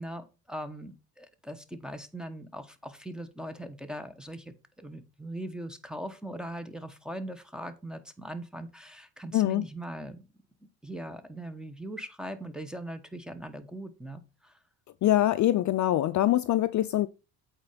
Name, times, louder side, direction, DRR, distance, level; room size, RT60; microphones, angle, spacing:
voice 1, 0.0-10.2 10.8-14.6, right 1 dB, ahead, 1.0 m, -40 dB
voice 2, 9.3-9.6 15.0-17.1, left 13 dB, 50° left, 0.5 m, -24 dB
8.2 x 4.4 x 5.1 m
cardioid pair, 110°, 40 cm